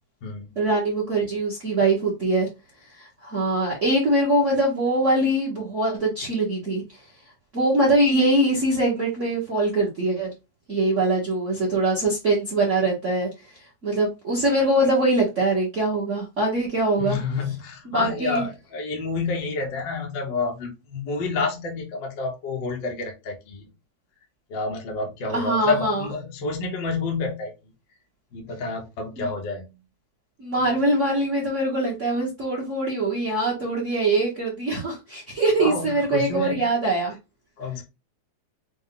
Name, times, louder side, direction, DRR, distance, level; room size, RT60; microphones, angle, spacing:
voice 1, 0.5-2.5 3.0-6.8 7.5-10.3 10.7-13.3 13.8-17.2 17.8-18.4 25.3-26.1 29.2-29.3 30.4-37.1, right 2 dB, 85° right, 0.6 m, -23 dB
voice 2, 17.0-23.7 24.5-27.5 28.3-29.6 35.6-36.6 37.6-37.8, left 3 dB, 55° left, 1.3 m, -29 dB
6.0 x 2.2 x 3.7 m
omnidirectional pair, 3.4 m